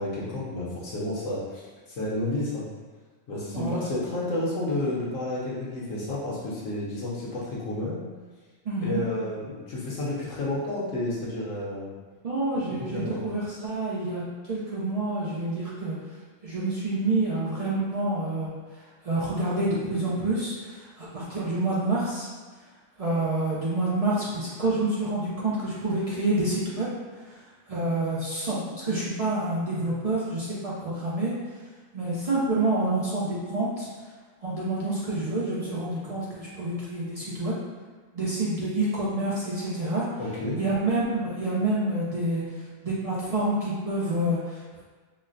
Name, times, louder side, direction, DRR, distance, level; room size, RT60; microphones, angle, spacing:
voice 1, 0.0-2.6 3.3-8.0 8.8-11.9 12.8-13.2 40.2-40.6, left 1 dB, 80° left, -6 dB, 1.2 m, -31 dB
voice 2, 3.5-3.9 8.7-9.0 12.2-16.0 16.4-18.5 19.0-22.3 23.0-26.9 27.3-27.4 27.7-31.3 31.9-33.9 34.4-37.5 38.1-40.1 40.6-42.4 42.8-44.8, right 2 dB, 60° right, -7 dB, 0.4 m, -28 dB
4.1 x 2.1 x 2.6 m, 1.4 s
omnidirectional pair, 1.3 m